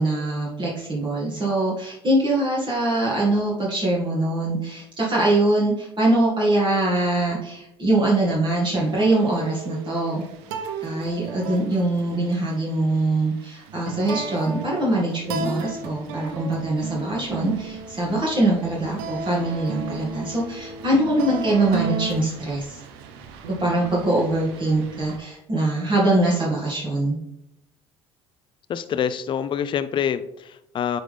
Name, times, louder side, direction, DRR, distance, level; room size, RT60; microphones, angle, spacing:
voice 1, 0.0-10.2 10.8-22.8 23.6-27.2, right 2 dB, 35° right, -5 dB, 2.2 m, -23 dB
sound 1, 8.7-25.2, right 5 dB, 75° right, 0.7 m, -35 dB
voice 2, 28.7-31.0, left 8 dB, 40° left, 12 dB, 0.5 m, -26 dB
9.4 x 3.9 x 3.4 m, 0.83 s
hypercardioid pair, 65°, 13 cm